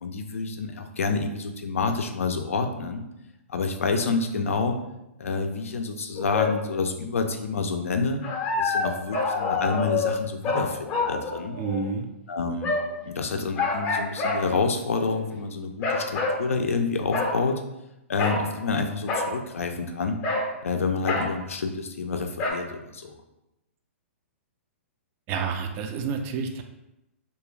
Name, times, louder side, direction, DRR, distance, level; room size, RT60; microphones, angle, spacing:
voice 1, 0.0-3.0 3.5-4.8 5.2-8.2 8.6-11.6 12.3-12.7 13.0-17.6 18.1-20.2 20.6-23.2, left 4 dB, 80° left, 5 dB, 0.4 m, -28 dB
sound 1, 6.2-6.6 8.2-11.9 12.6-13.0 13.6-14.4 15.0-15.3 15.8-16.4 17.1-17.4 18.2-18.5 19.1-19.3 20.2-20.5 21.0-21.3 22.4-22.5, left 3 dB, 30° left, 0.5 m, -27 dB
voice 2, 11.6-12.1 25.3-26.6, right 5 dB, 30° right, 5 dB, 0.3 m, -29 dB
2.3 x 2.3 x 3.1 m, 0.90 s
hypercardioid pair, 125°, 7 cm